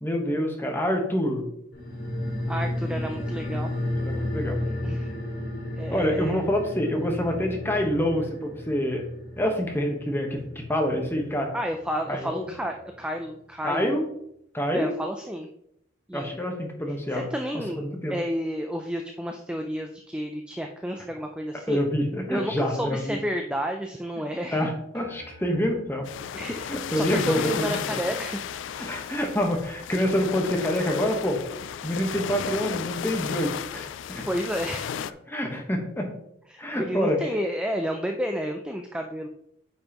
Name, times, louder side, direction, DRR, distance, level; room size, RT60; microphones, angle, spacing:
voice 1, 0.0-1.5 4.0-4.6 5.9-9.0 9.4-11.5 12.1-12.5 13.6-14.0 14.5-14.9 16.1-17.3 17.8-18.1 21.7-23.2 24.5-26.0 26.7-28.0 28.8-31.4 31.8-34.3 35.3-36.1 36.6-37.2, equal, 10° left, 1 dB, 1.1 m, -27 dB
sound 1, 1.7-12.6 12.9-13.0, left 1 dB, 50° left, 2.0 m, -33 dB
voice 2, 2.5-3.7 4.6-5.1 5.7-6.5 11.5-14.0 14.7-15.5 16.1-16.4 17.1-17.8 18.1-21.8 22.3-24.7 26.3-28.4 34.2-34.9 36.5-39.3, equal, 5° right, 3 dB, 0.4 m, -31 dB
sound 2, 24.9-27.6, equal, 55° right, 2.6 m, -52 dB
sound 3, 26.1-35.1, left 8 dB, 70° left, 0.3 m, -34 dB
8.9 x 5.5 x 3.0 m, 0.73 s
head